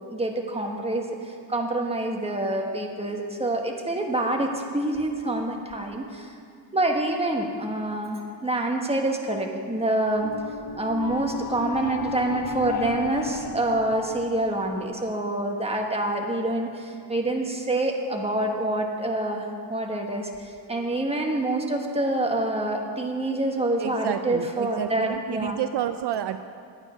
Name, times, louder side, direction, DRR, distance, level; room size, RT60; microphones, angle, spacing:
voice 1, 0.1-6.3 6.7-10.3 10.8-25.6, right 1 dB, 15° right, 2 dB, 1.3 m, -27 dB
sound 1, 10.2-15.2, left 8 dB, 40° left, 0.6 m, -35 dB
voice 2, 23.8-26.4, right 11 dB, 65° right, 10 dB, 0.5 m, -30 dB
11.5 x 8.9 x 5.8 m, 2.3 s
cardioid pair, 115°, 45 cm